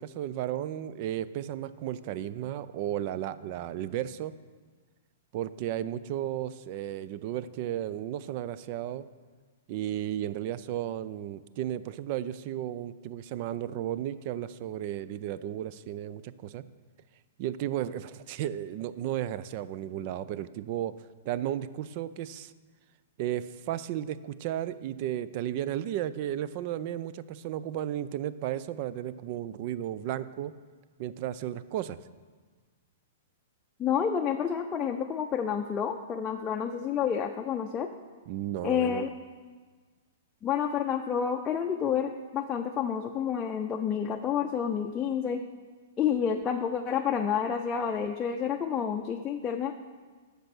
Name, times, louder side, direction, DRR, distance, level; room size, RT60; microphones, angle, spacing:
voice 1, 0.0-4.3 5.3-9.1 9.7-16.6 17.4-20.9 21.3-22.5 23.2-30.5 31.0-32.0 38.3-39.1, right 11 dB, 45° right, 15 dB, 0.5 m, -34 dB
voice 2, 33.8-37.9 38.6-39.1 40.4-45.5 46.0-49.7, left 8 dB, 20° left, 2 dB, 0.6 m, -29 dB
10.0 x 6.7 x 6.2 m, 1.5 s
hypercardioid pair, 130°, 0 cm